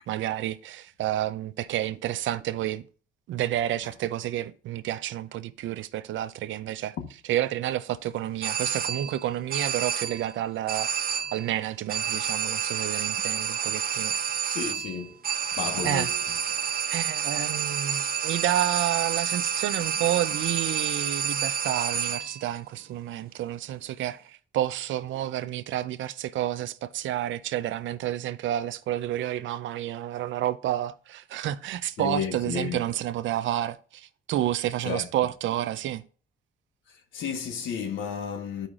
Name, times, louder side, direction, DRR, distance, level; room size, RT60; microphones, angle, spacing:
voice 1, 0.0-2.8 3.3-6.9 7.3-10.9 11.3-14.2 15.8-16.1 16.9-36.0, right 12 dB, 75° right, 0.5 m, -30 dB
sound 1, 8.4-9.2 9.5-10.3 10.7-11.5 11.9-22.4, right 8 dB, 50° right, 0.8 m, -29 dB
voice 2, 14.5-15.2 15.6-16.2 32.0-32.8 34.8-35.1 36.9-38.7, left 6 dB, 80° left, 1.3 m, -32 dB
13.0 x 4.9 x 2.5 m
cardioid pair, 90°, 20 cm